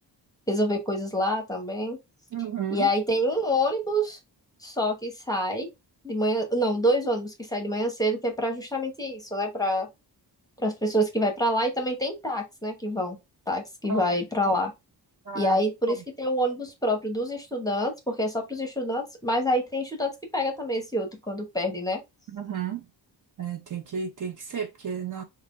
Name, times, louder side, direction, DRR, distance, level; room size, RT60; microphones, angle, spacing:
voice 1, 0.5-2.0 2.7-4.2 4.6-5.7 6.0-9.9 10.6-13.2 13.5-14.7 15.3-22.0, equal, 10° left, 0.9 m, -27 dB
voice 2, 2.3-2.9 13.9-14.0 15.3-15.6 22.3-22.8 23.4-25.2, right 7 dB, 45° right, 0.7 m, -32 dB
5.7 x 2.3 x 3.6 m
wide cardioid pair, 165°, 43 cm